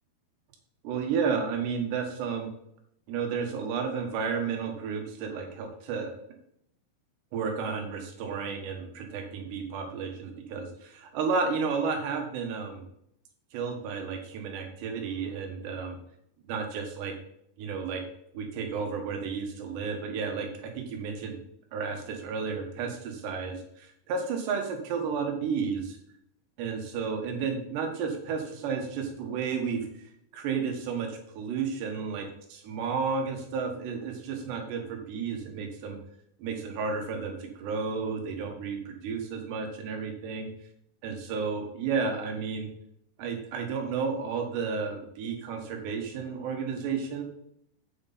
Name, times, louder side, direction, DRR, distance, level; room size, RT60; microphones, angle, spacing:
voice 1, 0.8-2.5 3.1-6.1 7.3-12.9 13.5-16.0 16.5-17.1 17.6-18.0 18.3-21.4 21.7-26.0 26.6-29.8 30.3-32.3 32.5-36.0 36.4-40.5 41.0-42.7 43.2-47.2, right 5 dB, 85° right, 3 dB, 3.8 m, -32 dB
9.4 x 7.9 x 4.2 m, 0.74 s
omnidirectional pair, 4.8 m